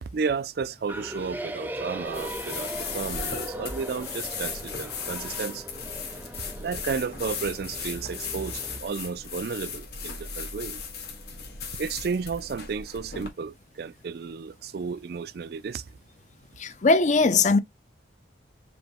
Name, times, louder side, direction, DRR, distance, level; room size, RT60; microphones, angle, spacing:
voice 1, 0.0-5.7 6.6-10.8 11.8-15.8, right 5 dB, 55° right, 0.4 m, -33 dB
sound 1, 0.9-8.8, right 1 dB, 10° right, 0.6 m, -39 dB
sound 2, 2.1-13.3, left 5 dB, 60° left, 1.7 m, -37 dB
voice 2, 16.6-17.6, left 3 dB, 40° left, 0.5 m, -20 dB
5.1 x 2.1 x 4.5 m
head